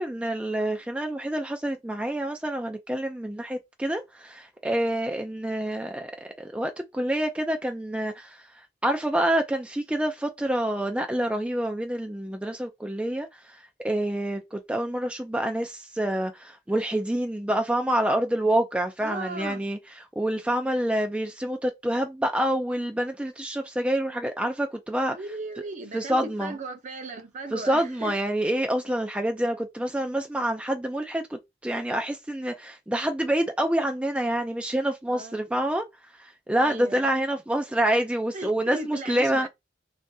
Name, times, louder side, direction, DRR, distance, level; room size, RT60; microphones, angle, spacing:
voice 1, 0.0-6.1 6.4-8.5 8.8-25.2 25.9-26.5 27.5-35.9 36.1-39.5, right 1 dB, 5° right, 0.3 m, -27 dB
voice 2, 19.0-19.6 25.1-28.1 35.1-35.4 36.6-37.1 38.3-39.5, right 2 dB, 40° right, 0.7 m, -37 dB
3.6 x 3.3 x 2.6 m
head